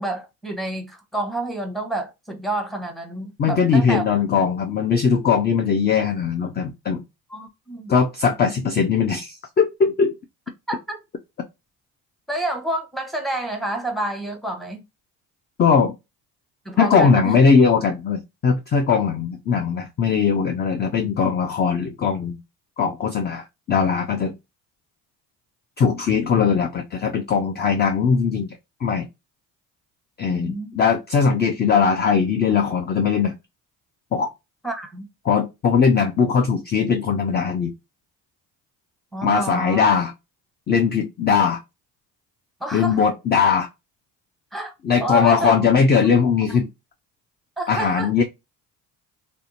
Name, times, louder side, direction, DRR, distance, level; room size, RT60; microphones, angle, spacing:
voice 1, 0.0-4.0 7.3-7.9 10.7-11.0 12.3-14.8 16.6-17.3 30.3-30.8 34.6-35.1 39.1-39.9 42.6-43.0 44.5-44.7 45.0-45.5 47.6-48.1, right 1 dB, ahead, 0.8 m, -29 dB
voice 2, 3.4-7.0 7.9-10.1 15.6-15.9 16.8-22.4 22.8-24.3 25.8-29.1 30.2-33.3 34.1-34.3 35.2-37.7 39.2-40.1 40.7-41.6 42.7-43.7 44.8-46.7 47.7-48.2, left 6 dB, 25° left, 0.3 m, -20 dB
2.6 x 2.1 x 2.6 m
supercardioid pair, 65°, 45 cm